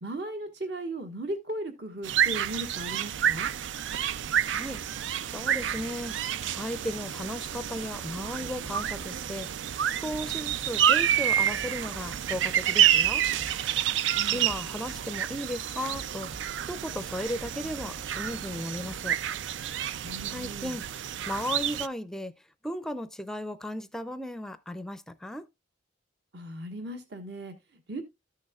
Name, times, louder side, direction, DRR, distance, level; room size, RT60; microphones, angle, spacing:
voice 1, 0.0-3.5 14.2-14.4 20.0-20.8 26.3-28.0, right 1 dB, 65° right, 1.4 m, -37 dB
sound 1, 2.0-21.9, right 10 dB, 85° right, 0.4 m, -29 dB
voice 2, 4.5-4.8 5.3-6.2 6.5-9.5 9.9-13.2 14.3-19.2 20.3-20.8 21.3-22.3 22.6-25.5, left 1 dB, 5° left, 0.4 m, -35 dB
sound 2, 8.4-19.2, right 1 dB, 30° right, 0.9 m, -50 dB
13.5 x 6.4 x 2.3 m
head